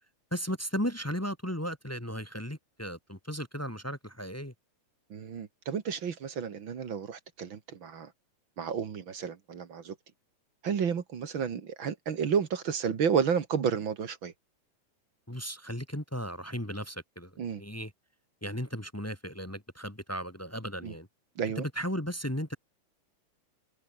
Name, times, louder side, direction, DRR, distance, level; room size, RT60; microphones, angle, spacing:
voice 1, 0.3-4.5 15.3-17.3 17.6-17.9 18.4-21.1 21.5-22.5, equal, 10° left, 0.9 m, -35 dB
voice 2, 5.1-8.1 8.6-10.0 10.6-14.3 17.4-17.6 20.8-20.9 21.4-21.6, right 7 dB, 45° right, 2.1 m, -31 dB
omnidirectional pair, 3.4 m